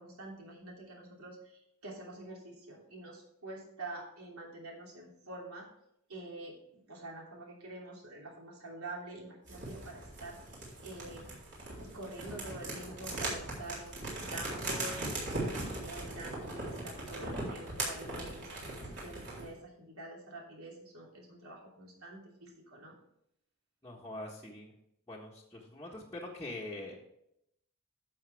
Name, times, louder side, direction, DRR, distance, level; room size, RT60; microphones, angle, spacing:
voice 1, 0.0-5.7 6.1-11.3 11.8-23.0, right 2 dB, 80° right, -1 dB, 3.1 m, -47 dB
sound 1, 9.5-19.5, right 2 dB, 50° right, 3.7 m, -39 dB
voice 2, 23.8-24.7 25.1-27.0, left 1 dB, 10° left, -6 dB, 1.4 m, -43 dB
11.5 x 7.2 x 3.5 m, 0.76 s
head